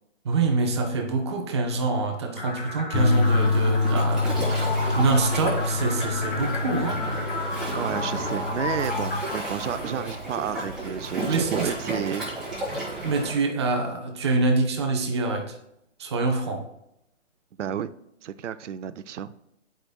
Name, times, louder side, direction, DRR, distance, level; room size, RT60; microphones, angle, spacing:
voice 1, 0.2-4.7 4.9-7.0 11.3-11.7 13.0-15.5 16.0-16.7, right 3 dB, 20° right, 4 dB, 0.6 m, -25 dB
sound 1, 2.4-10.3, left 2 dB, 40° left, 2.0 m, -34 dB
sound 2, 2.9-9.2, left 3 dB, 70° left, 1.8 m, -26 dB
Waves surf, 2.9-13.3, right 1 dB, ahead, 1.7 m, -33 dB
voice 2, 7.7-12.3 17.6-17.9 18.2-19.3, right 9 dB, 70° right, 13 dB, 0.5 m, -31 dB
8.9 x 5.1 x 2.2 m, 0.81 s
hypercardioid pair, 155°, 37 cm